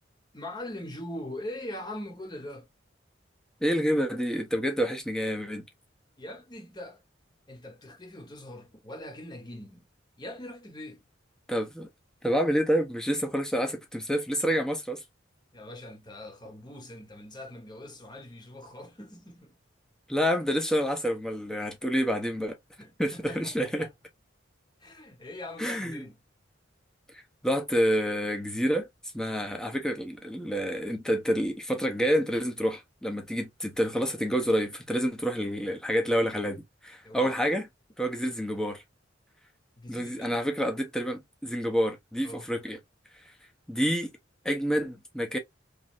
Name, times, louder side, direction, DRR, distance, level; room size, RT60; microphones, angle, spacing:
voice 1, 0.3-2.7 6.2-7.0 7.5-9.8 10.2-11.0 15.5-19.6 22.8-23.9 24.8-26.2 37.0-37.5 38.2-38.4 39.8-40.4 42.2-42.5, left 1 dB, 25° left, 1.0 m, -42 dB
voice 2, 3.6-5.7 11.5-11.9 12.2-15.0 20.1-22.6 23.0-23.9 25.6-26.0 27.1-28.9 29.1-37.7 38.0-38.8 39.9-42.8 43.7-44.1 44.4-45.4, equal, 5° left, 0.7 m, -28 dB
3.1 x 2.6 x 2.4 m
head